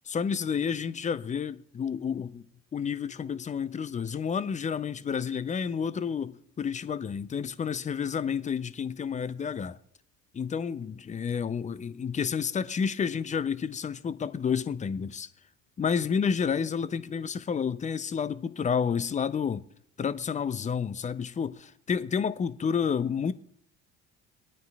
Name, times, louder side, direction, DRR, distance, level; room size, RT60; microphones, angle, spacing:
voice 1, 0.1-2.4 2.7-9.8 10.3-15.3 15.8-19.6 20.0-23.3, left 6 dB, 20° left, 0.5 m, -30 dB
21.5 x 9.3 x 2.3 m
hypercardioid pair, 60°, 37 cm